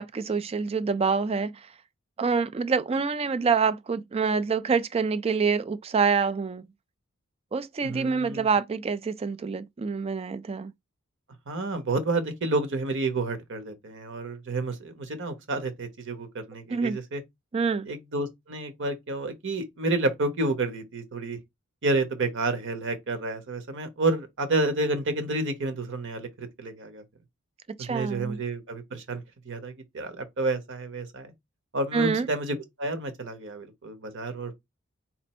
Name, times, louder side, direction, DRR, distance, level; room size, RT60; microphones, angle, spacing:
voice 1, 0.0-1.5 2.2-6.6 7.5-10.7 16.7-17.0 17.5-17.9 27.8-28.4 31.9-32.3, right 5 dB, 25° right, 0.3 m, -26 dB
voice 2, 7.8-8.5 11.5-17.2 17.9-21.4 21.8-27.0 27.8-31.3 31.7-34.5, right 2 dB, 55° right, 1.0 m, -30 dB
4.3 x 2.5 x 4.2 m
head